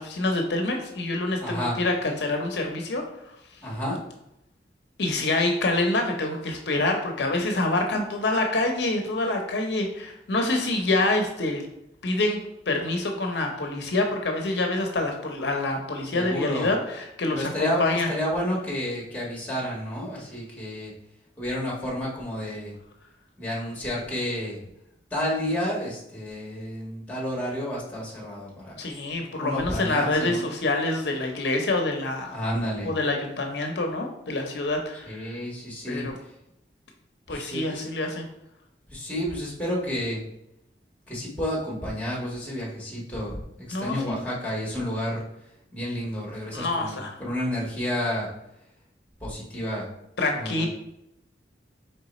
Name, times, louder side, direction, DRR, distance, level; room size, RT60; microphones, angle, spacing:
voice 1, 0.0-3.0 5.0-11.7 12.0-12.4 12.7-18.1 28.8-32.3 32.8-35.3 35.9-36.1 37.3-38.3 43.7-44.2 46.5-47.1 50.2-50.7, left 2 dB, 75° left, 3 dB, 0.7 m, -26 dB
voice 2, 1.4-1.8 3.6-4.0 16.1-16.7 17.3-20.9 21.4-22.7 23.4-24.6 25.1-28.8 29.2-30.5 32.3-32.9 34.9-36.0 37.3-37.9 38.9-40.2 41.1-43.4 43.7-45.2 45.7-48.3 49.2-49.9 50.3-50.7, equal, 10° left, -5 dB, 1.3 m, -30 dB
3.8 x 3.3 x 4.2 m, 0.84 s
head